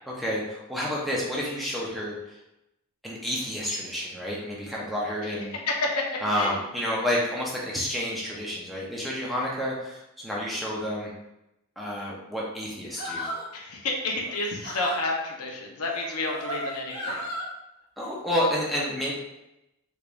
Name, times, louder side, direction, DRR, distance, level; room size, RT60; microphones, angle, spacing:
voice 1, 0.1-2.4 3.0-5.5 6.2-11.1 11.8-13.3 18.0-19.1, equal, ahead, -5 dB, 0.6 m, -30 dB
voice 2, 5.7-6.0 6.3-6.5 13.5-17.2, left 2 dB, 90° left, 0 dB, 0.8 m, -30 dB
sound 1, 12.9-13.5 14.2-15.0 16.0-17.5, equal, 45° left, 0.9 m, -34 dB
3.5 x 3.4 x 2.5 m, 0.91 s
head